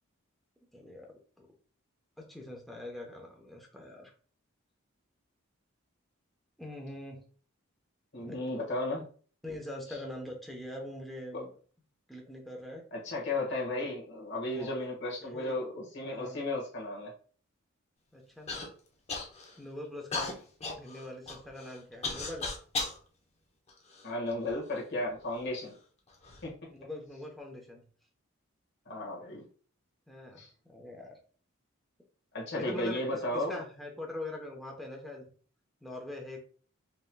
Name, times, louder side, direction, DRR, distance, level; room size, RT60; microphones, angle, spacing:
voice 1, 0.7-1.5 2.2-4.1 6.6-7.2 8.2-8.4 9.4-11.5 12.1-12.8 14.5-14.8 15.2-15.6 16.0-16.5 18.1-18.6 19.6-20.3 20.7-22.5 26.7-27.8 30.1-31.2 32.6-35.3 35.8-36.4, left 1 dB, ahead, 0 dB, 0.8 m, -43 dB
voice 2, 8.1-9.0 11.3-11.4 12.9-17.1 24.0-25.7 26.4-26.5 28.8-29.4 30.4-30.5 32.3-33.6, left 2 dB, 55° left, -2 dB, 1.5 m, -34 dB
Human voice / Cough, 18.5-18.7 19.1-19.6 20.1-23.0 23.7-24.5 25.3-25.4 26.1-26.4, left 3 dB, 30° left, 0.8 m, -36 dB
5.4 x 2.9 x 2.2 m, 0.43 s
head